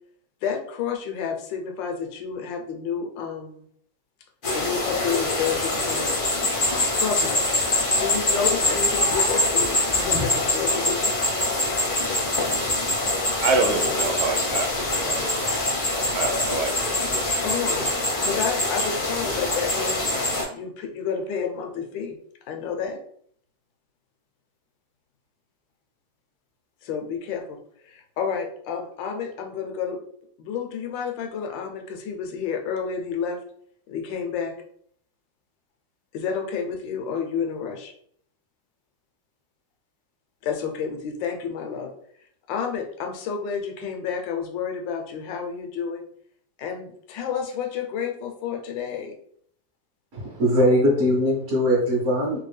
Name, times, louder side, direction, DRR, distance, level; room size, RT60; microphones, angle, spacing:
voice 1, 0.4-3.7 4.5-6.2 6.9-7.5 8.0-11.1 17.4-17.9 18.2-20.2 20.5-22.2 22.5-23.0 26.8-30.0 30.4-33.4 33.9-34.5 36.1-37.9 40.4-41.9 42.5-46.1 46.6-49.1, left 6 dB, 80° left, 1.3 m, -30 dB
sound 1, 4.4-20.4, left 2 dB, 50° left, 0.6 m, -24 dB
voice 2, 13.4-15.7 16.1-17.0, right 4 dB, 85° right, 1.3 m, -27 dB
voice 3, 50.1-52.4, equal, 50° right, 1.1 m, -21 dB
3.3 x 2.3 x 3.2 m
omnidirectional pair, 2.0 m